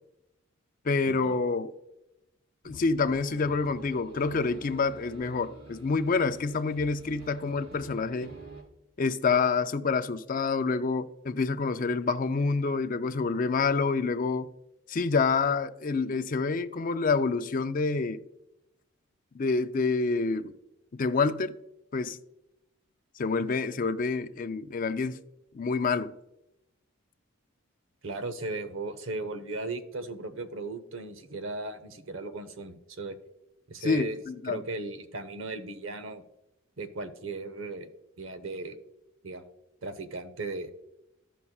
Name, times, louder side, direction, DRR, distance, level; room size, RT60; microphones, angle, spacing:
voice 1, 0.8-1.7 2.6-8.3 9.0-14.5 14.9-18.2 19.3-20.5 20.9-21.6 21.9-22.2 23.2-25.2 25.5-26.2 33.8-34.6, left 4 dB, 40° left, 0.4 m, -27 dB
sound 1, 2.6-8.6, right 3 dB, 85° right, 3.1 m, -47 dB
voice 2, 28.0-33.2 33.7-34.2 34.5-36.2 36.8-37.9 38.2-38.8 39.2-39.5 39.8-40.7, right 2 dB, 70° right, 0.8 m, -37 dB
15.0 x 5.5 x 2.3 m
head